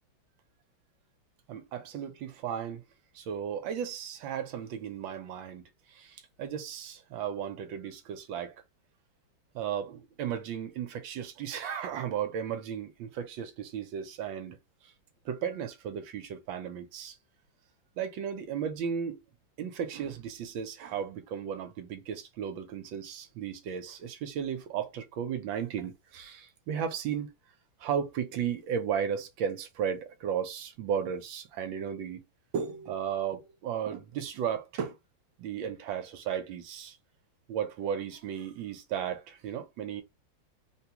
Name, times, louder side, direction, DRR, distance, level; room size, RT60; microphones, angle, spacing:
voice 1, 1.5-2.8 3.1-5.6 5.9-8.5 9.5-14.6 15.2-17.1 18.0-19.2 19.6-27.3 27.8-32.2 32.5-35.0 35.4-37.0 37.5-40.0, right 8 dB, 75° right, 1.3 m, -35 dB
3.7 x 2.2 x 2.8 m
omnidirectional pair, 2.2 m